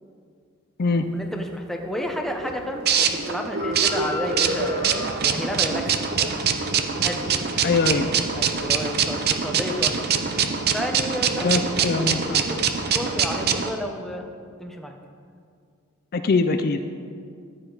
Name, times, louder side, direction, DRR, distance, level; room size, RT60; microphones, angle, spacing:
Chicken rooster, 0.8-9.1, left 3 dB, 25° left, 1.0 m, -41 dB
voice 1, 1.1-6.4 7.0-7.3 8.4-10.1 10.7-11.6 12.0-14.2 14.6-14.9, equal, ahead, 3 dB, 0.8 m, -31 dB
sound 1, 2.1-13.7, right 6 dB, 50° right, 0.7 m, -24 dB
voice 2, 7.6-8.1 11.4-12.4 16.1-16.8, left 4 dB, 45° left, 7 dB, 0.5 m, -22 dB
14.0 x 9.9 x 4.0 m, 2.2 s
head